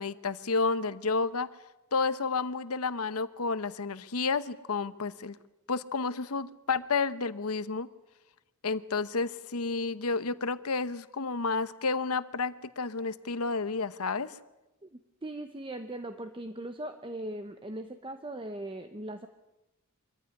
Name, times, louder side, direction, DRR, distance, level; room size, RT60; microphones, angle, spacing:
voice 1, 0.0-1.5 1.9-5.4 5.7-7.9 8.6-14.3, left 4 dB, 90° left, 14 dB, 1.0 m, -31 dB
voice 2, 15.2-19.3, right 1 dB, 25° right, 8 dB, 0.9 m, -39 dB
25.0 x 15.0 x 9.9 m, 1.0 s
head